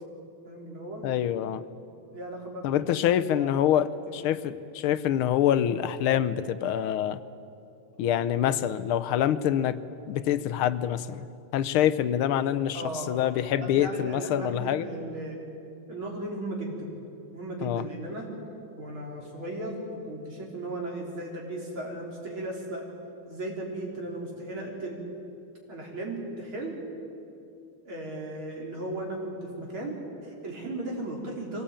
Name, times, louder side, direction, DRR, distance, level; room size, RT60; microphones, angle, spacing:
voice 1, 0.4-1.0 2.1-3.1 3.4-3.5 4.1-4.2 12.7-13.1 13.6-15.4 15.9-16.9 17.3-18.3 18.8-22.9 23.3-25.0 25.7-26.8 27.9-31.6, right 1 dB, 70° right, -1 dB, 4.6 m, -36 dB
voice 2, 1.0-1.6 2.6-7.2 8.0-9.8 10.1-11.3 11.5-14.9 17.6-17.8, left 10 dB, 90° left, 14 dB, 1.6 m, -26 dB
23.5 x 17.5 x 8.8 m, 2.7 s
omnidirectional pair, 2.3 m